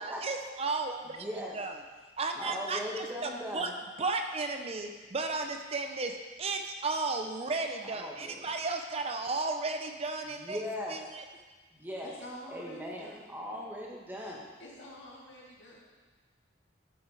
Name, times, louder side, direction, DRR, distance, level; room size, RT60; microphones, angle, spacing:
voice 1, 0.0-1.3 1.6-1.8 2.2-3.7 4.0-10.6 10.9-11.2, right 3 dB, 35° right, 5 dB, 0.7 m, -34 dB
voice 2, 1.0-1.6 2.3-3.7 7.8-8.5 10.3-11.2 11.7-12.1 12.5-14.4, equal, 10° right, -3 dB, 1.6 m, -39 dB
voice 3, 12.0-13.3 14.6-15.9, equal, 85° left, -3 dB, 2.3 m, -48 dB
12.0 x 6.5 x 4.9 m, 1.3 s
head